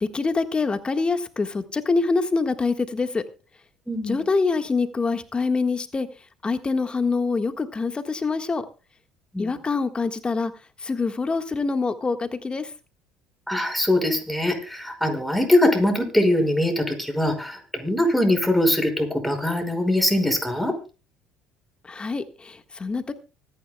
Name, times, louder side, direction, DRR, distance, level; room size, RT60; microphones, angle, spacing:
voice 1, 0.1-3.2 4.1-6.1 6.4-8.6 9.4-10.5 10.8-12.7 21.8-23.1, left 4 dB, 25° left, 8 dB, 1.5 m, -25 dB
voice 2, 3.9-4.2 9.3-9.5 13.5-20.7, left 1 dB, ahead, 4 dB, 5.4 m, -22 dB
24.5 x 10.5 x 2.3 m, 0.33 s
hypercardioid pair, 65°, 4 cm